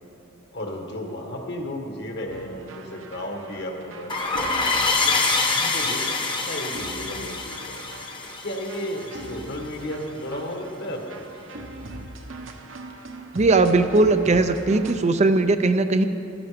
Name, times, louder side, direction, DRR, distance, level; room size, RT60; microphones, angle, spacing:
voice 1, 0.5-4.1 4.4-4.6 5.0-5.2 5.5-6.2 6.5-7.8 8.4-11.2, left 1 dB, 55° left, 2 dB, 1.7 m, -33 dB
sound 1, 2.3-15.0, right 2 dB, 70° right, 1.1 m, -41 dB
sound 2, 4.1-9.4, left 3 dB, 25° left, 1.1 m, -25 dB
voice 2, 13.3-16.0, right 3 dB, 35° right, 9 dB, 0.5 m, -19 dB
14.5 x 13.0 x 5.1 m, 2.8 s
head